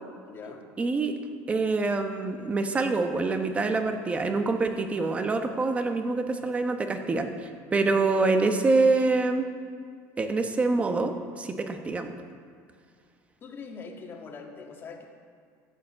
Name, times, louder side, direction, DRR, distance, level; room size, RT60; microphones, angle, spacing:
voice 1, 0.3-0.6 13.4-15.1, left 4 dB, 30° left, 2 dB, 1.8 m, -42 dB
voice 2, 0.8-1.1 1.5-7.3 7.7-9.5 10.2-12.1, right 3 dB, 20° right, 6 dB, 1.0 m, -25 dB
13.5 x 8.6 x 7.5 m, 2.1 s
cardioid pair, 145°, 7 cm